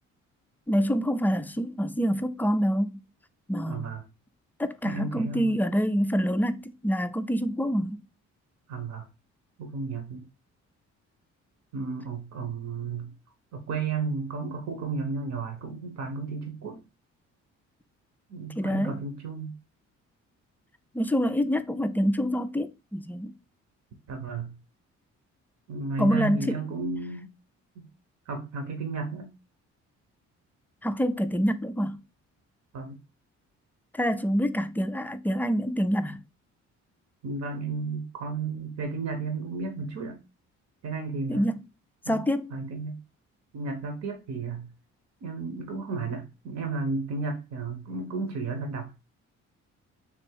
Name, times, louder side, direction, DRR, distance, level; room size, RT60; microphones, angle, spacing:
voice 1, 0.7-3.0 3.5-4.0 4.6-8.0 18.6-19.0 20.9-23.3 26.0-26.6 30.8-32.0 33.9-36.2 41.3-41.6 42.1-42.5, equal, 5° left, 0.3 m, -26 dB
voice 2, 3.7-4.0 4.8-5.5 8.7-9.1 9.6-10.3 11.7-13.1 13.5-16.8 18.3-19.5 24.1-24.5 25.7-27.3 27.7-27.9 28.3-29.3 32.7-33.0 37.2-40.2 40.8-41.5 42.0-42.2 42.5-43.0 43.5-44.7 45.2-48.9, right 4 dB, 65° right, 1.0 m, -33 dB
3.5 x 2.9 x 4.5 m
cardioid pair, 90°, 30 cm